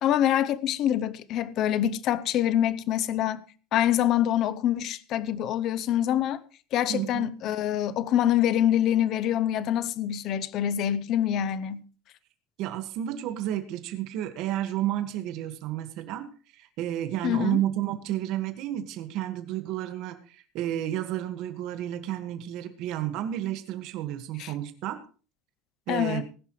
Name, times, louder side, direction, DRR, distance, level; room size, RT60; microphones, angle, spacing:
voice 1, 0.0-3.4 3.7-6.4 6.7-11.8 17.2-17.6 24.4-24.5 25.9-26.2, left 11 dB, 40° left, 0.7 m, -25 dB
voice 2, 6.9-7.3 12.6-25.0 25.9-26.2, right 12 dB, 45° right, 1.7 m, -31 dB
19.5 x 11.0 x 3.2 m
cardioid pair, 175°, 0 cm